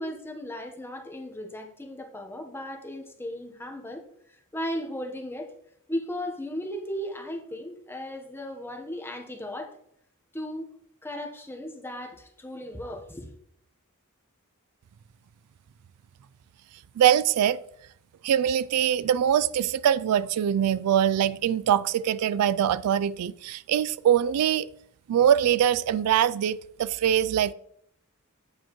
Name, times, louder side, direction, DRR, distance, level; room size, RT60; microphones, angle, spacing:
voice 1, 0.0-4.0 4.3-5.5 5.9-9.7 10.3-10.7 11.0-13.3, equal, 10° left, 1.0 m, -36 dB
voice 2, 17.0-17.6 18.2-24.7 25.1-27.5, right 9 dB, 85° right, 0.3 m, -23 dB
8.6 x 7.0 x 3.0 m
head